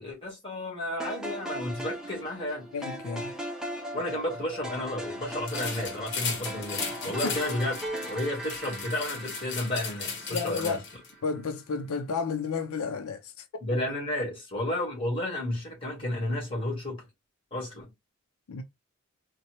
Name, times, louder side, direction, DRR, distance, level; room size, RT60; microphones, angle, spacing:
voice 1, 0.0-2.7 3.9-7.7 8.0-10.8 13.6-17.0 17.5-17.9, left 1 dB, 25° left, 1.7 m, -32 dB
sound 1, 1.0-11.3, equal, 5° right, 0.5 m, -38 dB
voice 2, 2.7-3.3 7.2-7.4 10.3-10.8 11.2-13.8 18.5-18.6, left 5 dB, 90° left, 0.5 m, -32 dB
sound 2, 5.5-11.1, left 5 dB, 55° left, 0.9 m, -36 dB
4.1 x 2.2 x 2.8 m
head